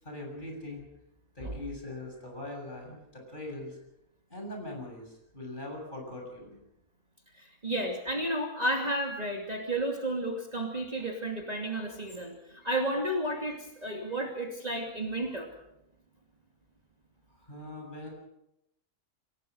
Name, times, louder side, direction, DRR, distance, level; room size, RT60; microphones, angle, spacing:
voice 1, 0.0-0.8 1.3-3.8 4.3-6.6 17.3-18.1, left 1 dB, 35° left, 1 dB, 7.6 m, -41 dB
voice 2, 7.3-15.5, right 1 dB, 25° right, 1 dB, 2.8 m, -32 dB
28.0 x 18.0 x 6.4 m, 0.83 s
omnidirectional pair, 1.5 m